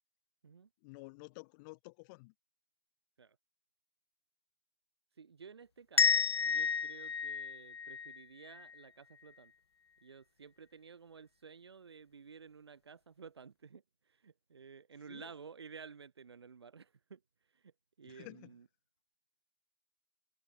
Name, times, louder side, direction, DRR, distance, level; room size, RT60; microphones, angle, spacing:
voice 1, 0.8-2.3 15.1-15.3 18.0-18.6, left 27 dB, 50° left, 5.4 m, -51 dB
voice 2, 5.2-9.5 10.0-17.2 17.5-17.7 18.0-18.6, right 6 dB, 85° right, 3.2 m, -53 dB
sound 1, 6.0-8.8, left 6 dB, 85° left, 0.7 m, -31 dB
figure-of-eight pair, 100°, 13 cm